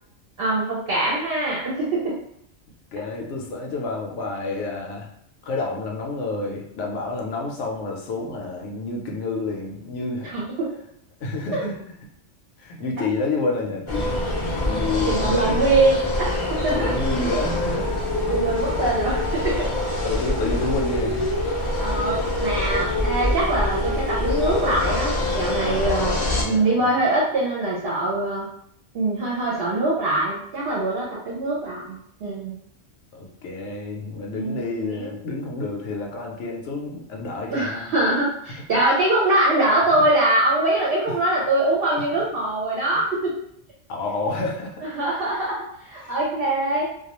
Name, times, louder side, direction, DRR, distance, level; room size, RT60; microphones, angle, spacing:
voice 1, 0.4-2.1 10.2-10.7 11.5-11.6 15.1-16.9 18.3-19.7 21.8-26.2 26.5-28.5 28.9-32.6 34.3-35.1 37.5-43.3 44.8-47.1, right 2 dB, 60° right, -5 dB, 0.7 m, -23 dB
voice 2, 2.9-5.1 5.4-10.3 11.2-11.8 12.6-14.2 14.7-15.6 16.7-17.9 20.0-21.3 26.3-26.9 33.1-37.9 43.9-44.8 46.0-46.1, left 3 dB, 75° left, -1 dB, 0.9 m, -29 dB
sound 1, 13.9-26.4, left 1 dB, 50° left, 0.3 m, -25 dB
2.3 x 2.2 x 2.9 m, 0.70 s
omnidirectional pair, 1.2 m